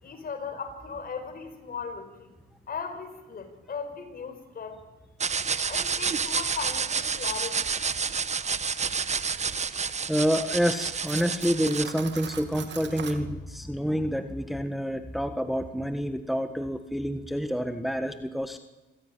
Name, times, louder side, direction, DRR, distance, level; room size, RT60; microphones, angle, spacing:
voice 1, 0.0-2.3 2.7-4.8 5.7-7.7 9.7-9.8, left 5 dB, 50° left, 8 dB, 5.1 m, -37 dB
sound 1, 5.2-11.8, right 5 dB, 35° right, 1.3 m, -29 dB
voice 2, 10.1-18.6, equal, ahead, 7 dB, 1.5 m, -28 dB
Cutlery silverware, 11.0-13.2, right 8 dB, 65° right, 2.4 m, -41 dB
27.0 x 16.0 x 9.7 m, 1.2 s
cardioid pair, 90°, 20 cm